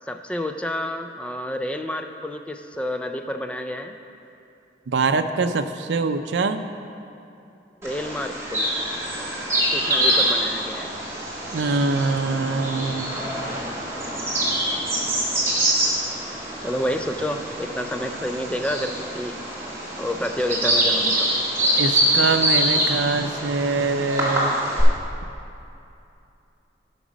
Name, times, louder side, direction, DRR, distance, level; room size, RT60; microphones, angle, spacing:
voice 1, 0.1-4.0 7.8-8.7 9.7-10.9 16.6-19.4 20.0-21.3, left 1 dB, 5° left, 6 dB, 0.3 m, -29 dB
voice 2, 4.9-6.6 11.5-13.1 21.8-24.5, right 3 dB, 90° right, 9 dB, 0.5 m, -23 dB
Bird vocalization bird call bird song, 7.8-24.8, right 1 dB, 15° right, 1.8 m, -25 dB
11.0 x 6.1 x 5.1 m, 2.7 s
head